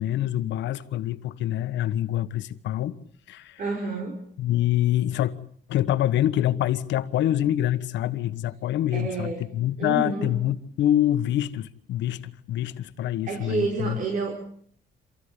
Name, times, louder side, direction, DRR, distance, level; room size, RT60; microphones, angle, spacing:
voice 1, 0.0-3.0 3.3-3.6 4.4-5.3 5.7-14.0, left 12 dB, 90° left, 1.5 m, -25 dB
voice 2, 3.6-4.2 8.9-9.5 9.8-10.3 13.3-14.4, right 3 dB, 45° right, 5.5 m, -29 dB
27.5 x 15.0 x 9.9 m
cardioid pair, 160°, 18 cm